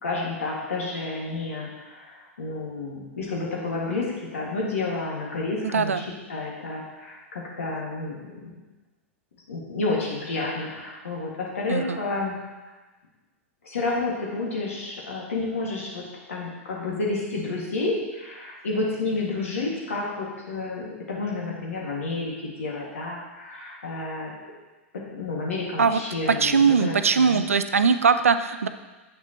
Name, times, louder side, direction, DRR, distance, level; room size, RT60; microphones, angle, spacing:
voice 1, 0.0-4.1 4.3-8.5 9.5-12.4 13.6-16.0 16.3-24.3 24.9-27.4, left 3 dB, 80° left, -3 dB, 1.8 m, -30 dB
voice 2, 26.3-28.7, right 5 dB, 90° right, 10 dB, 0.4 m, -20 dB
7.3 x 5.9 x 2.9 m, 1.2 s
hypercardioid pair, 100°, 7 cm